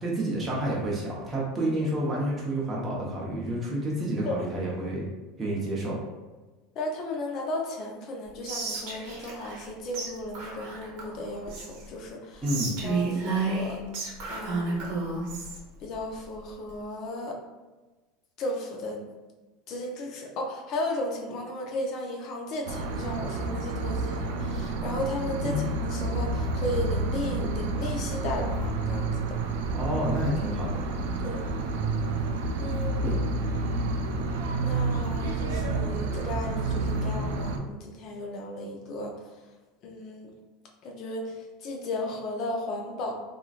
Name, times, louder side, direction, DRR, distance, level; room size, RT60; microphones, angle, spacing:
voice 1, 0.0-5.1 5.4-6.0 12.4-12.7 25.4-25.6 29.7-30.8 33.0-33.2, right 1 dB, 20° right, -5 dB, 0.8 m, -29 dB
voice 2, 6.8-12.4 12.8-13.8 14.3-15.1 15.8-17.4 18.4-19.1 19.7-29.4 31.2-31.4 32.6-33.2 34.6-39.2 39.8-40.3 40.8-43.1, left 1 dB, 50° left, 1 dB, 0.6 m, -35 dB
Whispering, 8.4-9.7 9.9-10.1 10.3-11.9 12.4-15.6, right 3 dB, 65° right, 0.8 m, -31 dB
sound 1, 22.6-37.6, right 3 dB, 85° right, 0.3 m, -29 dB
2.9 x 2.5 x 2.4 m, 1.2 s
supercardioid pair, 125°, 0 cm